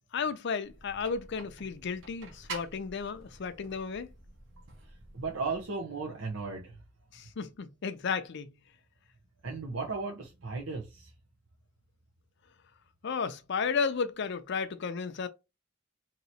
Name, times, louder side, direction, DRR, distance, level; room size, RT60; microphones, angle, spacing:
voice 1, 0.1-4.1 7.1-8.5 13.0-15.3, left 5 dB, 60° left, 0.5 m, -33 dB
sound 1, 0.6-5.6, right 3 dB, 70° right, 1.2 m, -48 dB
voice 2, 5.1-6.8 9.4-11.1, right 4 dB, 90° right, 0.8 m, -35 dB
3.0 x 2.9 x 4.0 m
head